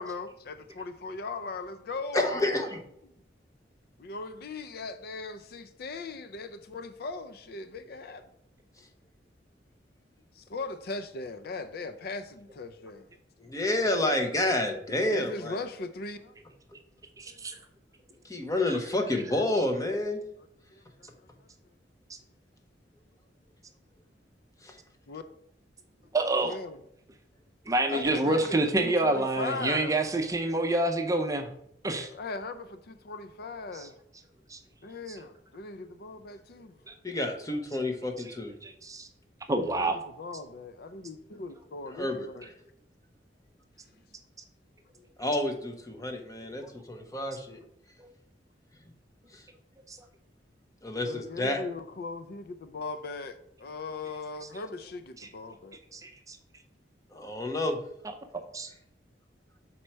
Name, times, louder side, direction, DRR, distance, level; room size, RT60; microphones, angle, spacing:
voice 1, 0.0-2.6 4.0-8.3 10.4-13.1 15.1-16.3 17.3-17.4 20.7-21.5 25.1-25.2 26.4-26.8 27.9-30.0 32.1-33.9 34.8-36.7 39.6-42.5 51.0-55.8, left 3 dB, 55° left, 0.4 m, -39 dB
voice 2, 2.1-2.8 8.8-8.9 13.4-15.6 18.2-20.2 24.6-24.8 37.0-38.5 41.9-42.5 45.2-47.6 49.3-49.5 50.8-51.6 57.1-57.8, left 1 dB, 20° left, 0.9 m, -29 dB
voice 3, 17.2-17.5 26.1-26.5 27.7-31.5 31.8-32.1 33.7-33.9 34.5-34.6 35.1-35.2 36.9-37.0 38.6-39.1 39.5-40.0 49.9-50.0 55.2-55.3 55.9-56.4 58.5-58.7, right 2 dB, 20° right, 0.6 m, -28 dB
6.3 x 4.3 x 4.5 m
head